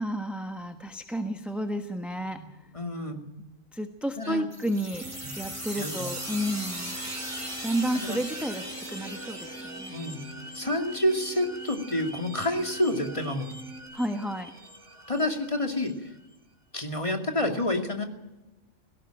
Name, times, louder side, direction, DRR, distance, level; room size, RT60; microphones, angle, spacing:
voice 1, 0.0-2.4 3.7-7.0 7.6-10.1 13.9-14.5, equal, ahead, 5 dB, 1.2 m, -31 dB
voice 2, 2.7-3.2 4.2-4.4 5.2-5.3 5.8-6.1 7.9-8.2 9.9-10.2 10.5-13.5 15.1-16.1 16.7-18.0, left 1 dB, 25° left, 4 dB, 2.5 m, -28 dB
sound 1, 4.5-15.9, right 1 dB, 25° right, 4.2 m, -40 dB
sound 2, 4.9-13.8, right 1 dB, 80° left, 4.6 m, -46 dB
17.5 x 17.5 x 9.0 m, 1.0 s
omnidirectional pair, 1.3 m